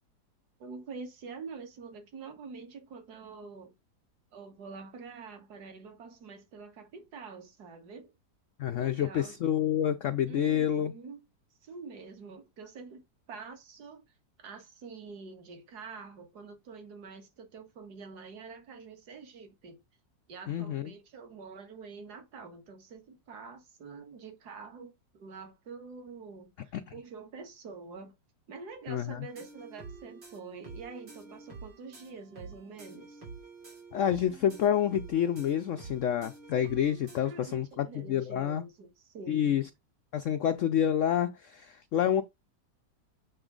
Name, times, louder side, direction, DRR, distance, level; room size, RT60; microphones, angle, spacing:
voice 1, 0.6-3.7 4.3-8.1 8.8-9.4 10.2-11.2 11.6-13.0 13.3-14.0 14.4-19.8 20.3-28.1 28.5-33.2 37.2-39.6, right 4 dB, 60° right, 2.1 m, -46 dB
voice 2, 8.6-10.9 20.5-20.9 26.7-26.8 28.9-29.3 33.9-38.6 39.3-39.7 40.1-42.2, left 10 dB, 80° left, 0.6 m, -28 dB
sound 1, 29.3-37.2, right 4 dB, 85° right, 3.5 m, -48 dB
8.0 x 3.9 x 3.8 m
omnidirectional pair, 1.9 m